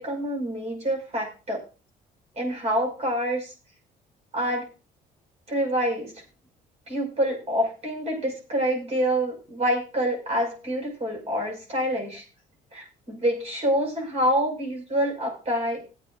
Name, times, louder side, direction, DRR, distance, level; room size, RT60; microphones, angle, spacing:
voice 1, 0.0-1.6 2.4-3.5 4.3-4.6 5.5-6.1 6.9-12.2 12.7-15.8, equal, 40° right, 1 dB, 6.0 m, -26 dB
21.0 x 8.6 x 2.6 m, 0.32 s
cardioid pair, 110°, 17 cm